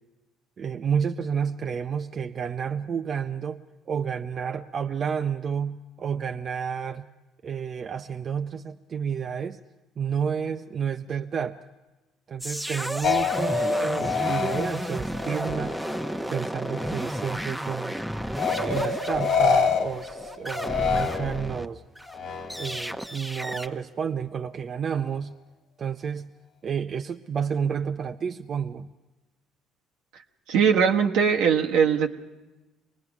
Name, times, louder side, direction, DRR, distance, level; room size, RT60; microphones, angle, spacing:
voice 1, 0.6-3.6 3.9-7.0 7.4-9.6 10.0-11.6 12.3-15.8 16.3-17.9 18.6-21.8 22.6-25.3 25.8-26.3 26.6-28.9, right 7 dB, 45° right, 6 dB, 0.6 m, -30 dB
sound 1, 12.4-21.7 21.9-23.7, equal, 5° right, 0.9 m, -33 dB
sound 2, 13.0-16.2 16.6-17.4 18.4-21.6 22.1-22.9, left 5 dB, 65° left, 1.2 m, -27 dB
voice 2, 30.5-32.1, right 7 dB, 75° right, 3 dB, 1.2 m, -20 dB
24.5 x 19.5 x 6.0 m, 1.1 s
hypercardioid pair, 65°, 0 cm